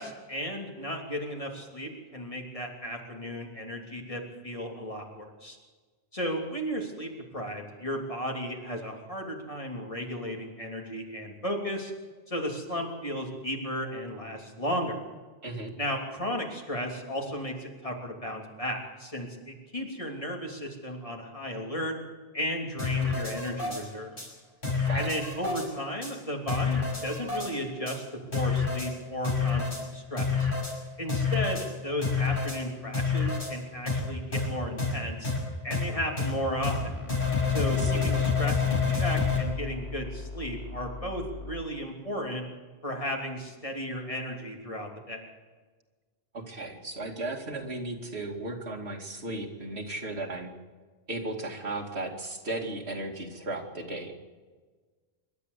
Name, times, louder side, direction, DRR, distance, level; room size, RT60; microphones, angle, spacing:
voice 1, 0.0-5.6 6.1-11.9 12.3-15.0 15.8-22.0 22.3-24.3 24.9-28.0 28.3-30.5 31.0-35.3 35.6-36.9 37.5-42.4 42.8-45.3, equal, 30° left, 1 dB, 3.2 m, -34 dB
sound 1, 22.8-23.8 24.2-24.3 24.6-25.7 26.0-26.1 26.5-27.5 27.9-28.0 28.3-28.9 29.2-29.8 30.2-30.7 31.1-31.7 32.0-32.6 32.9-33.5 33.9-34.0 34.3-34.5 34.8-34.9 35.2-35.4 35.7-35.8 36.2-36.3 36.6-36.8 37.1-39.4, left 5 dB, 55° left, 7.2 m, -27 dB
sound 2, 36.6-41.6, left 3 dB, 90° left, 2.4 m, -40 dB
voice 2, 37.8-38.1 46.3-50.5 51.1-54.2, right 2 dB, 80° right, 2 dB, 2.8 m, -35 dB
26.5 x 12.5 x 8.3 m, 1.4 s
omnidirectional pair, 1.1 m